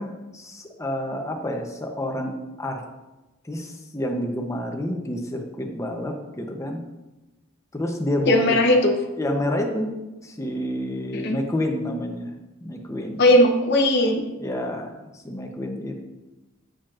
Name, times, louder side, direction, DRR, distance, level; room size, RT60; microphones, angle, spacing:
voice 1, 0.0-2.8 3.4-6.8 7.7-8.7 9.2-9.9 10.2-13.2 14.4-16.1, left 1 dB, 15° left, 3 dB, 0.7 m, -29 dB
voice 2, 8.3-8.9 11.1-11.4 13.2-14.2, left 1 dB, 55° left, 1 dB, 0.8 m, -18 dB
8.7 x 5.0 x 2.4 m, 1.1 s
head